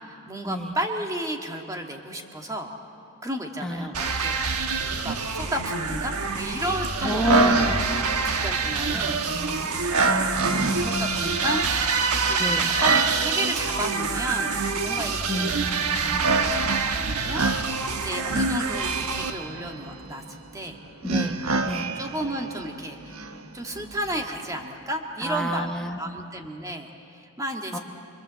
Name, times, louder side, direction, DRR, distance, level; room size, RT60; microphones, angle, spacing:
voice 1, 0.1-2.7 3.2-4.4 5.0-9.2 10.7-11.6 12.3-15.7 16.0-20.8 21.9-23.2 23.5-25.7 26.0-27.8, right 1 dB, 15° right, 2 dB, 1.8 m, -33 dB
sound 1, 3.9-19.3, right 4 dB, 85° right, 1.3 m, -27 dB
voice 2, 7.0-7.7 8.9-9.6 10.0-11.3 12.4-12.7 15.3-16.2 21.0-21.4 21.6-21.9 25.2-26.0 27.7-27.8, equal, 5° left, 1 dB, 1.1 m, -29 dB
sound 2, 7.0-24.6, right 3 dB, 70° right, 1.1 m, -29 dB
25.0 x 25.0 x 7.5 m, 2.6 s
head